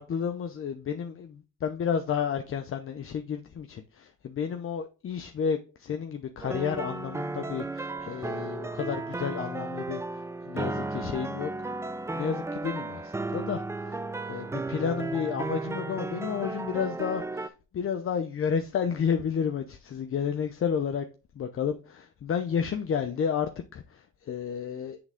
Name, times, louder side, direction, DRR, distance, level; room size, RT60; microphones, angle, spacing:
voice 1, 0.0-11.5 12.1-14.0 14.3-21.1 21.3-25.0, left 7 dB, 45° left, 0.7 m, -31 dB
sound 1, 6.4-17.5, right 2 dB, 10° right, 0.4 m, -34 dB
7.9 x 3.7 x 3.5 m
cardioid pair, 90°, 30 cm